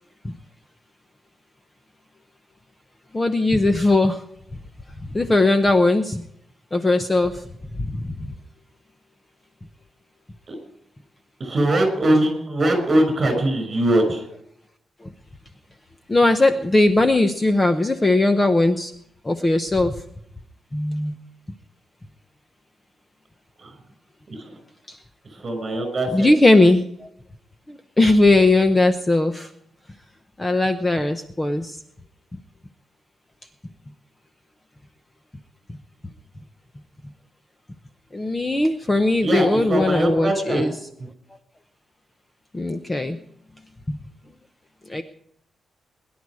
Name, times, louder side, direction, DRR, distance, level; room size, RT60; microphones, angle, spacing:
voice 1, 3.1-4.2 5.1-6.2 6.7-7.5 7.7-8.3 15.0-15.1 16.1-18.9 19.2-20.0 20.7-21.1 24.9-25.0 26.1-27.1 27.7-29.5 30.4-31.8 38.1-40.7 42.5-43.2 43.9-44.0 44.9-45.0, left 2 dB, 15° left, 8 dB, 0.8 m, -19 dB
voice 2, 11.4-14.2 23.6-23.7 24.3-24.4 25.4-26.3 39.2-40.6, right 1 dB, 30° right, 5 dB, 6.2 m, -21 dB
21.5 x 11.0 x 4.8 m, 0.72 s
wide cardioid pair, 175°, 0 cm